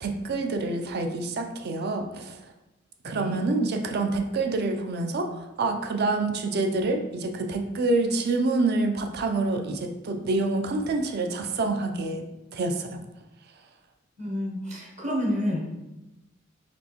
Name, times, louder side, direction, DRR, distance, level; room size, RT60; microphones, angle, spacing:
voice 1, 0.0-2.4 3.0-12.2 12.5-13.0, right 3 dB, 55° right, 5 dB, 0.5 m, -27 dB
voice 2, 3.0-3.4 14.2-15.6, left 1 dB, 35° right, -3 dB, 0.9 m, -29 dB
4.2 x 3.3 x 3.0 m, 0.99 s
head